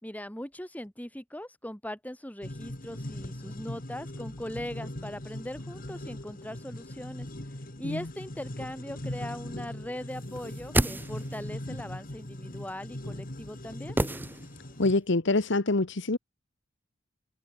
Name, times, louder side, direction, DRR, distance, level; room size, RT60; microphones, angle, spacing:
voice 1, 0.0-7.3 7.8-14.0, left 1 dB, 10° left, 3.5 m, -40 dB
sound 1, 2.4-14.9, left 1 dB, 45° left, 2.4 m, -40 dB
sound 2, 10.4-11.6 14.0-14.9 15.1-15.2, right 1 dB, 10° right, 1.0 m, -30 dB
voice 2, 14.8-16.2, left 2 dB, 65° left, 1.3 m, -25 dB
head